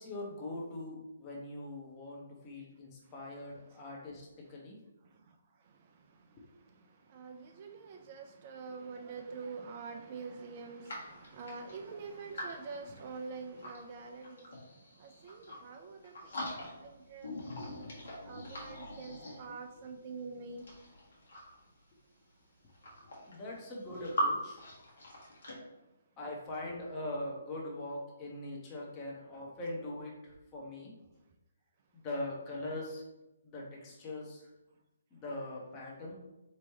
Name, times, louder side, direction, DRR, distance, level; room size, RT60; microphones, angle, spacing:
voice 1, 0.0-4.8 6.4-6.5 17.5-18.0 22.8-24.6 26.2-30.9 31.9-33.0 33.4-34.5 35.1-36.1, left 1 dB, 20° left, -2 dB, 1.0 m, -42 dB
voice 2, 5.1-17.8 18.2-20.7 24.2-24.3, right 4 dB, 35° right, 4 dB, 0.3 m, -46 dB
sound 1, 10.9-13.8 14.2-15.7 16.0-17.0 17.2-19.8 20.5-21.7 22.4-22.5 22.7-24.3 24.5-25.5, equal, 60° left, 1.5 m, -41 dB
4.3 x 3.1 x 2.9 m, 0.95 s
figure-of-eight pair, 135°, 0 cm